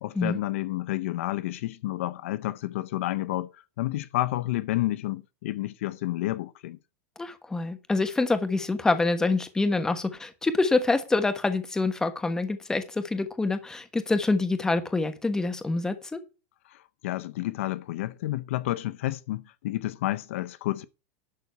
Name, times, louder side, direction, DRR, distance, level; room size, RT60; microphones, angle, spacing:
voice 1, 0.0-6.8 16.7-20.8, left 16 dB, 75° left, 0.6 m, -30 dB
voice 2, 7.2-16.2, left 3 dB, 10° left, 1.3 m, -26 dB
11.5 x 4.1 x 8.0 m
supercardioid pair, 145°, 7 cm